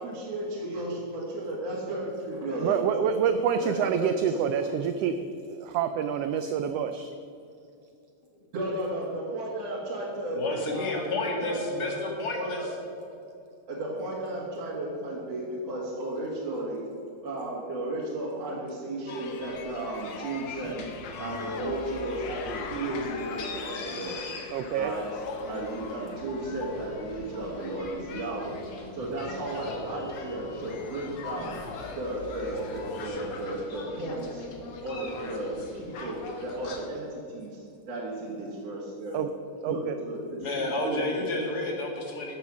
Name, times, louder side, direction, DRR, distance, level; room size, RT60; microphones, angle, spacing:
voice 1, 0.0-3.2 3.6-4.7 8.5-11.9 12.3-12.7 13.7-16.8 17.2-20.8 21.2-24.2 24.8-25.0 25.5-28.6 28.9-31.6 32.0-34.4 34.8-39.1 39.7-41.3, right 1 dB, 60° right, -5 dB, 2.9 m, -34 dB
voice 2, 2.6-5.1 5.4-7.1 24.5-24.9 39.1-39.3 39.6-40.0, right 8 dB, 80° right, 8 dB, 1.4 m, -27 dB
voice 3, 10.3-12.6 40.4-42.3, left 2 dB, 35° left, 0 dB, 2.2 m, -30 dB
sound 1, 19.1-33.1, left 5 dB, 75° left, 1.0 m, -41 dB
sound 2, 20.5-36.8, left 3 dB, 55° left, 2.0 m, -44 dB
13.0 x 7.3 x 6.2 m, 2.5 s
omnidirectional pair, 3.3 m